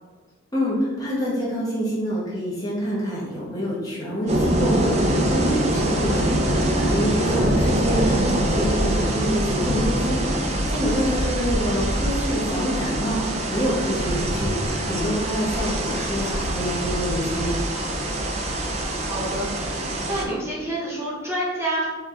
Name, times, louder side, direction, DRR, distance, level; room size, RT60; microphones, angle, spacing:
voice 1, 0.5-17.6, equal, 20° left, -7 dB, 0.8 m, -26 dB
sound 1, 4.3-20.2, right 1 dB, 35° right, 0.5 m, -24 dB
voice 2, 7.2-7.5 11.1-11.2 19.0-19.6 19.9-21.8, right 1 dB, 15° right, -7 dB, 1.0 m, -28 dB
4.5 x 2.4 x 3.4 m, 1.3 s
head